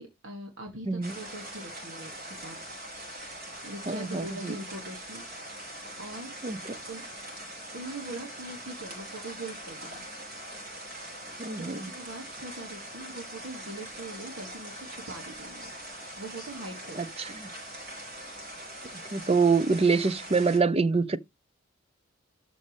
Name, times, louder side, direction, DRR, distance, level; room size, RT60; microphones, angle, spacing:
voice 1, 0.0-2.6 3.6-5.5 6.0-6.4 6.9-7.1 7.7-10.1 11.5-15.7 16.2-17.1, right 2 dB, 75° right, 2.2 m, -42 dB
sound 1, 1.0-20.6, right 1 dB, 50° right, 5.5 m, -42 dB
voice 2, 3.9-4.5 6.4-6.6 11.4-11.9 19.1-21.2, right 4 dB, 30° right, 0.6 m, -25 dB
12.5 x 5.3 x 3.3 m
head